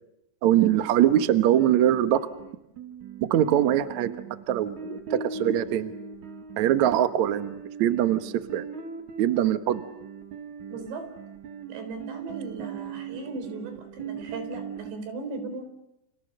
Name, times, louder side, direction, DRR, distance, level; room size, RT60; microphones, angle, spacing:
voice 1, 0.4-2.3 3.2-4.1 4.5-5.9 6.6-8.6 9.2-9.9, right 11 dB, 90° right, 10 dB, 1.6 m, -22 dB
sound 1, 0.6-14.9, right 5 dB, 50° right, 2.9 m, -40 dB
voice 2, 10.7-11.1 11.7-15.7, right 3 dB, 65° right, 8 dB, 6.1 m, -37 dB
30.0 x 28.5 x 6.7 m, 0.86 s
omnidirectional pair, 5.4 m